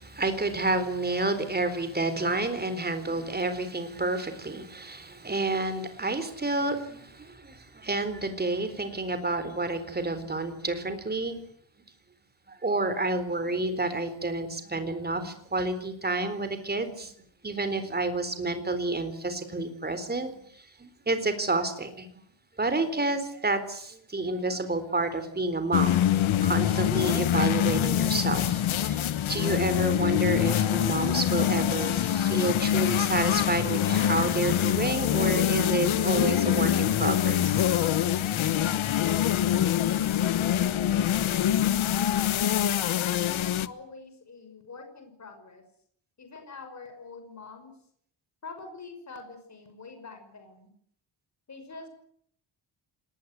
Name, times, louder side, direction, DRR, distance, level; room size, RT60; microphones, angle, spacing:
voice 1, 0.0-11.4 12.5-17.1 17.4-22.1 22.6-26.0 26.4-37.6, right 2 dB, 20° right, 10 dB, 3.9 m, -29 dB
sound 1, 25.7-43.7, left 11 dB, 90° left, 1.2 m, -25 dB
voice 2, 42.8-45.6 46.2-47.7 48.4-50.7 51.5-51.9, left 4 dB, 35° left, 6 dB, 5.8 m, -45 dB
27.0 x 20.0 x 8.3 m, 0.67 s
wide cardioid pair, 155°, 46 cm